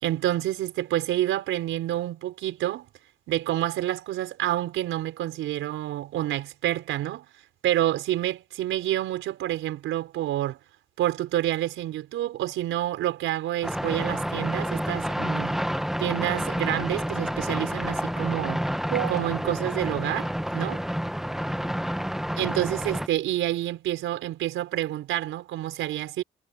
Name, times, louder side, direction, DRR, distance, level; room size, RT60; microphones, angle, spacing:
voice 1, 0.0-2.9 3.3-7.2 7.6-10.6 11.0-15.6 16.0-18.6 18.9-20.8 22.4-26.2, right 13 dB, 85° right, 4.9 m, -28 dB
sound 1, 13.6-23.1, equal, ahead, 2.1 m, -29 dB
cardioid pair, 90°, 20 cm